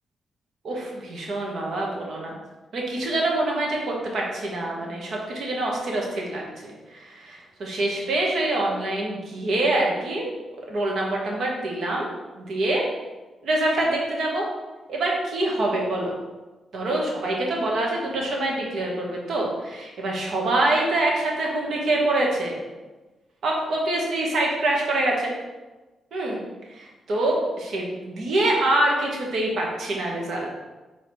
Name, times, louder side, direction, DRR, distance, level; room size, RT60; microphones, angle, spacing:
voice 1, 0.6-2.3 2.7-10.2 10.7-12.1 12.3-12.8 13.4-14.4 14.9-16.1 16.7-22.6 23.4-25.3 26.1-26.4 26.7-30.5, right 1 dB, 70° right, -2 dB, 1.6 m, -25 dB
4.6 x 4.4 x 4.8 m, 1.2 s
supercardioid pair, 55°, 0 cm